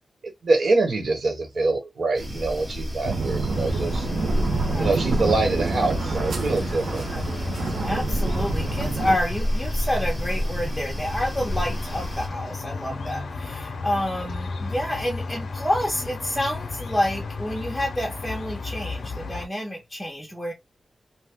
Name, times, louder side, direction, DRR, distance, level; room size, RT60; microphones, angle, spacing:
voice 1, 0.4-4.1 4.7-7.0, right 3 dB, 65° right, 1.2 m, -24 dB
sound 1, 2.1-12.3, equal, 20° right, 1.0 m, -30 dB
sound 2, 3.0-9.2, right 3 dB, 90° right, 0.8 m, -28 dB
sound 3, 3.5-19.5, left 4 dB, 75° left, 0.7 m, -34 dB
voice 2, 4.5-5.3 7.1-7.2 7.7-20.5, left 1 dB, 5° left, 0.7 m, -29 dB
2.8 x 2.2 x 3.5 m
wide cardioid pair, 155°, 0 cm